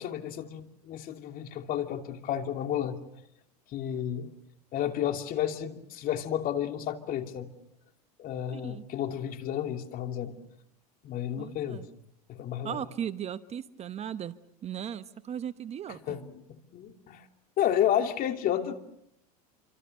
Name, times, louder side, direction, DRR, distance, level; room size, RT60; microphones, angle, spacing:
voice 1, 0.0-3.0 3.7-4.3 4.7-7.5 8.2-10.3 11.0-11.8 12.3-12.8 16.1-16.3 16.7-17.2 17.6-18.8, left 10 dB, 45° left, 5 dB, 2.8 m, -31 dB
voice 2, 8.5-8.9 11.4-11.9 12.6-14.4 14.6-16.2, right 9 dB, 30° right, 12 dB, 1.1 m, -37 dB
27.5 x 25.5 x 6.7 m, 0.78 s
hypercardioid pair, 100°, 20 cm